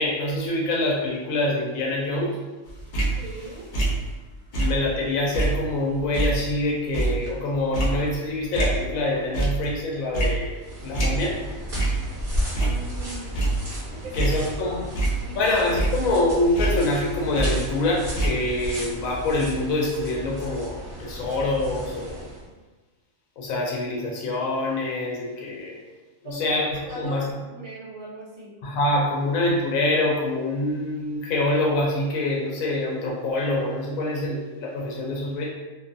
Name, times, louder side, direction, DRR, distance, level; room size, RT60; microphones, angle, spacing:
voice 1, 0.0-2.4 4.5-11.4 14.1-14.9 15.4-22.2 23.4-25.8 26.2-26.7 26.9-27.3 28.6-35.5, left 2 dB, 85° left, -3 dB, 1.0 m, -25 dB
sound 1, 2.7-5.0 5.3-9.0 9.3-9.8 10.1-11.5 11.7-12.1 12.4-13.8 14.1-15.5 15.7-17.9 18.1-18.3, right 2 dB, 60° left, 0.5 m, -26 dB
voice 2, 3.2-3.7 10.8-10.9 12.6-14.4 15.2-15.6 26.2-26.5 26.8-28.5, right 1 dB, 80° right, -4 dB, 1.1 m, -40 dB
sound 2, 10.5-22.5, equal, 45° right, 1.0 m, -35 dB
2.6 x 2.3 x 2.5 m, 1.2 s
omnidirectional pair, 1.4 m